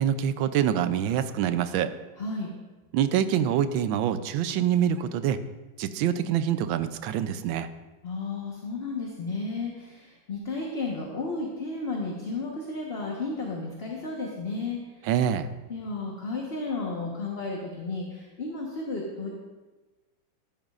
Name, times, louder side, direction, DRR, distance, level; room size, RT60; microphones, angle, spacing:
voice 1, 0.0-1.9 2.9-5.4 5.8-7.7 15.1-15.5, right 9 dB, 80° right, 12 dB, 1.4 m, -25 dB
voice 2, 2.2-2.5 8.0-15.1 15.7-19.3, left 3 dB, 35° left, -2 dB, 1.2 m, -33 dB
14.0 x 10.5 x 2.4 m, 1.2 s
omnidirectional pair, 2.1 m